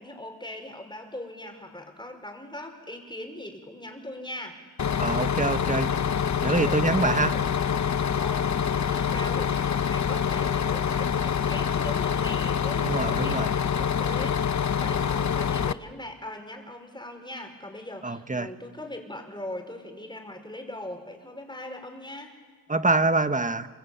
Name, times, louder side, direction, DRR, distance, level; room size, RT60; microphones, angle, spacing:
voice 1, 0.0-4.6 6.4-7.4 8.2-8.6 8.9-22.4, left 1 dB, 10° left, 4 dB, 5.1 m, -40 dB
Bus, 4.8-15.7, left 7 dB, 50° left, 0.8 m, -26 dB
voice 2, 5.0-5.9 6.4-7.3 12.8-13.5 18.0-18.5 22.7-23.7, right 2 dB, 20° right, 10 dB, 1.3 m, -25 dB
27.5 x 22.5 x 8.6 m, 1.5 s
cardioid pair, 80°, 38 cm